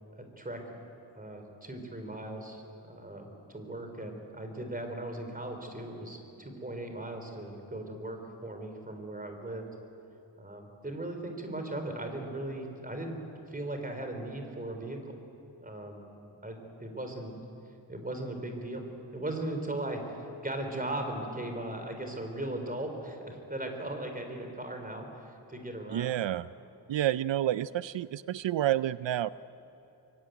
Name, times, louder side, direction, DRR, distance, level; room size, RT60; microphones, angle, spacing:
voice 1, 0.2-0.6 1.1-9.7 10.4-13.2 13.5-15.2 15.6-16.0 16.4-17.3 17.9-18.9 19.1-26.1, right 1 dB, 20° right, 5 dB, 3.8 m, -38 dB
voice 2, 25.9-26.5 26.9-29.3, right 13 dB, 90° right, 16 dB, 0.5 m, -29 dB
24.0 x 23.5 x 9.3 m, 2.8 s
wide cardioid pair, 135°, 43 cm